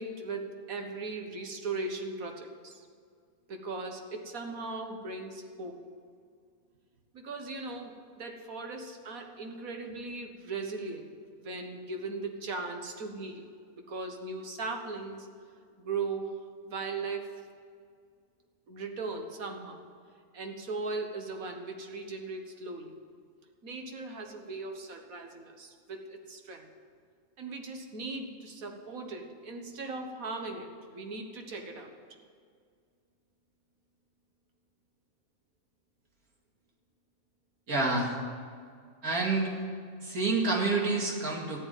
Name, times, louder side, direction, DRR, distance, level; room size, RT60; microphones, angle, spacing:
voice 1, 0.0-2.8 3.5-5.8 7.1-11.1 11.4-13.5 13.7-15.3 15.8-16.3 16.6-17.3 18.7-19.8 20.3-22.9 23.6-26.7 27.4-31.9, right 3 dB, 75° right, 4 dB, 1.8 m, -38 dB
voice 2, 37.7-38.1 39.0-39.5 40.0-41.6, right 3 dB, 90° right, -1 dB, 2.8 m, -28 dB
14.0 x 8.4 x 9.1 m, 2.1 s
omnidirectional pair, 1.5 m